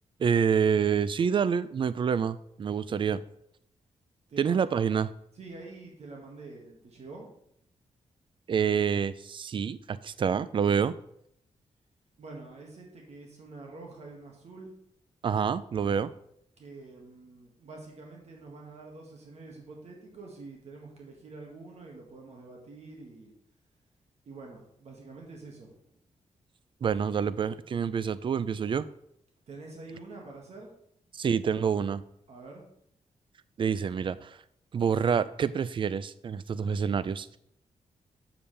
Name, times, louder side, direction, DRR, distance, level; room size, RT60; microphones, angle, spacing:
voice 1, 0.2-3.2 4.4-5.1 8.5-10.9 15.2-16.1 26.8-28.9 31.1-32.0 33.6-34.4 34.7-37.4, right 7 dB, 45° right, 16 dB, 0.3 m, -27 dB
voice 2, 4.3-4.7 5.3-7.3 12.2-14.7 16.6-23.3 24.3-25.9 29.5-30.7 32.3-32.7, right 3 dB, 60° right, 0 dB, 1.7 m, -46 dB
7.1 x 6.9 x 3.3 m, 0.72 s
cardioid pair, 90°, 12 cm